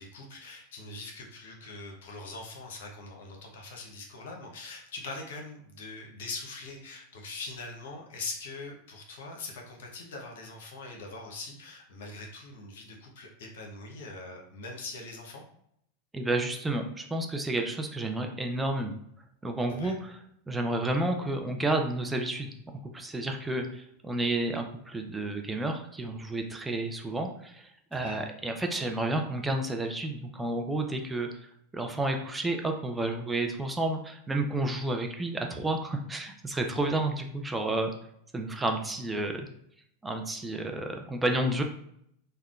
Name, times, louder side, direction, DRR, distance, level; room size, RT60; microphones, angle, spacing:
voice 1, 0.0-15.4 19.7-20.0 27.9-28.2, left 3 dB, 65° left, 1 dB, 0.7 m, -42 dB
voice 2, 16.1-18.9 19.4-20.2 20.5-22.5 22.9-31.3 31.7-37.9 38.3-39.5 40.0-41.6, right 2 dB, 10° right, 3 dB, 0.4 m, -31 dB
3.4 x 2.1 x 2.3 m, 0.71 s
hypercardioid pair, 90°, 0 cm